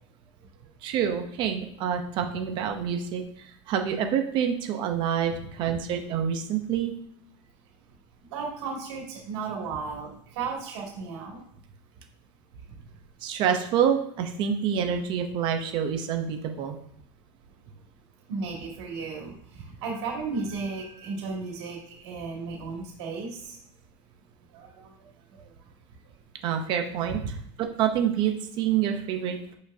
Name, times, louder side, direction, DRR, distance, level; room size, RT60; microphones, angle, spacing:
voice 1, 0.8-6.9 13.2-16.8 26.4-29.6, right 8 dB, 35° right, 5 dB, 0.7 m, -27 dB
voice 2, 8.3-11.4 18.3-19.3 19.8-21.8 22.0-23.4 24.5-24.9, right 4 dB, 65° right, -2 dB, 2.3 m, -34 dB
8.6 x 5.1 x 2.7 m, 0.69 s
supercardioid pair, 170°, 15 cm